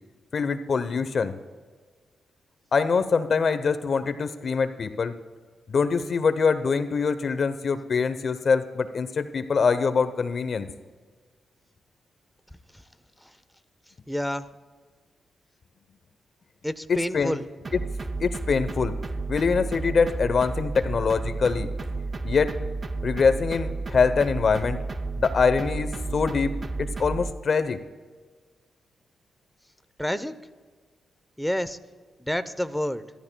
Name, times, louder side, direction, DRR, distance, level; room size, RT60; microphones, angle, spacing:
voice 1, 0.3-1.3 2.7-5.1 5.7-10.7 16.9-17.4 17.7-17.8 18.2-18.9 19.3-21.7 22.2-22.5 23.0-24.8 25.2-26.5 26.8-27.8, left 5 dB, 55° left, 11 dB, 0.8 m, -24 dB
voice 2, 14.1-14.5 16.6-17.4 30.0-30.3 31.4-31.8 32.2-33.0, equal, ahead, 12 dB, 0.7 m, -28 dB
sound 1, 17.6-27.3, right 3 dB, 35° right, 0.6 m, -32 dB
27.0 x 12.5 x 2.3 m, 1.5 s
cardioid pair, 80°, 0 cm